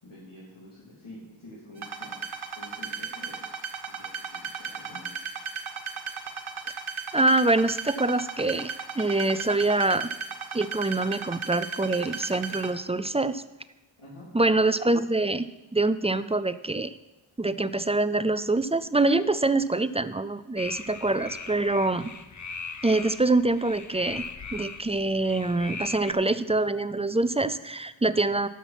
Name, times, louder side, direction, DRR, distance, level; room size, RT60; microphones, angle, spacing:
voice 1, 0.0-3.5 3.8-5.2 14.0-14.3, left 1 dB, 80° left, -7 dB, 3.0 m, -48 dB
sound 1, 1.8-12.7, right 5 dB, 80° right, 1.2 m, -35 dB
voice 2, 7.1-10.1 10.5-13.4 14.3-15.5 15.7-17.0 17.4-22.1 22.8-24.2 24.5-28.5, right 2 dB, 15° right, 13 dB, 0.3 m, -25 dB
sound 2, 20.6-26.1, left 4 dB, 35° left, 0.7 m, -39 dB
13.0 x 5.9 x 5.9 m, 1.0 s
wide cardioid pair, 60°, 48 cm